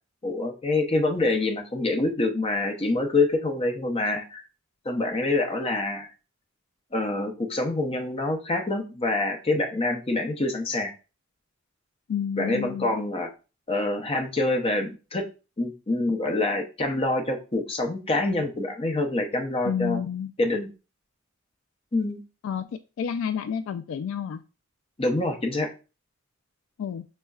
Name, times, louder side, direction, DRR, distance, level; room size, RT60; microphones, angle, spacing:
voice 1, 0.2-4.4 4.8-6.1 6.9-10.9 12.4-13.3 13.7-15.3 15.6-20.0 20.4-20.7 21.9-22.2 25.0-25.7, left 2 dB, 30° left, 4 dB, 0.7 m, -26 dB
voice 2, 12.1-12.9 19.6-20.3 22.4-24.4 26.8-27.1, left 7 dB, 75° left, 9 dB, 0.3 m, -30 dB
6.3 x 2.1 x 2.3 m, 0.32 s
head